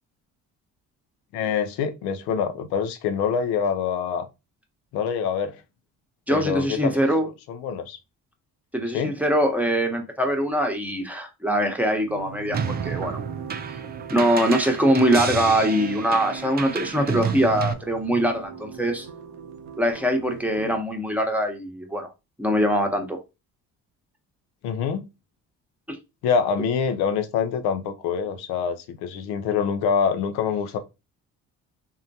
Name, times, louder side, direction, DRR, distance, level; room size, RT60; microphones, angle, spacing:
voice 1, 1.3-4.3 4.9-5.6 6.3-8.0 8.9-9.1 24.6-25.1 26.2-30.8, left 6 dB, 85° left, 0.6 m, -25 dB
voice 2, 6.3-7.3 8.7-13.2 14.1-19.1 19.8-22.1 22.4-23.2 25.9-26.0, equal, 5° right, 0.9 m, -23 dB
sound 1, 12.1-20.7, right 7 dB, 90° right, 0.6 m, -39 dB
sound 2, 12.5-17.7, right 6 dB, 25° right, 0.4 m, -30 dB
3.7 x 2.1 x 2.7 m
supercardioid pair, 65°, 38 cm